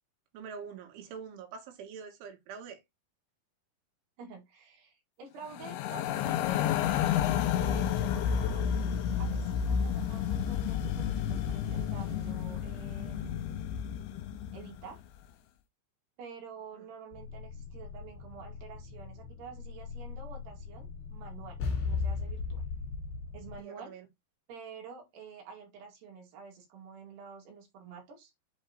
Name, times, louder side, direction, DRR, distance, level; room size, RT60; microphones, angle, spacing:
voice 1, 0.3-2.8 16.7-16.9 23.6-24.1, right 6 dB, 85° right, 4.1 m, -45 dB
voice 2, 4.2-7.1 7.5-8.6 9.1-13.6 14.5-15.0 16.2-22.6 23.3-24.0 24.5-28.3, right 5 dB, 65° right, 4.1 m, -49 dB
sound 1, 5.5-14.8, left 8 dB, 80° left, 3.1 m, -31 dB
sound 2, 6.8-13.3, left 3 dB, 30° left, 1.6 m, -52 dB
sound 3, 17.1-23.6, left 4 dB, 60° left, 3.7 m, -38 dB
7.9 x 4.4 x 3.9 m
omnidirectional pair, 5.4 m